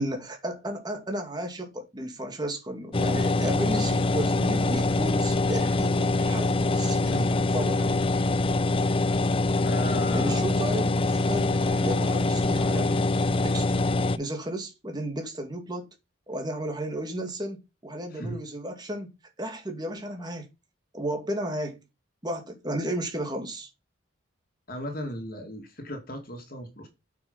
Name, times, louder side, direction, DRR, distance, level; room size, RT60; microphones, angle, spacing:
voice 1, 0.0-8.1 10.1-13.1 13.4-13.8 14.2-15.9 16.3-17.6 17.8-19.1 19.4-20.5 20.9-21.8 22.2-23.7, right 1 dB, 20° right, 2.4 m, -33 dB
sound 1, 2.9-14.2, left 2 dB, 25° left, 0.5 m, -24 dB
voice 2, 7.0-7.5 9.6-10.4 18.1-18.4 24.7-26.9, equal, 45° left, 2.6 m, -36 dB
8.6 x 6.1 x 5.7 m
head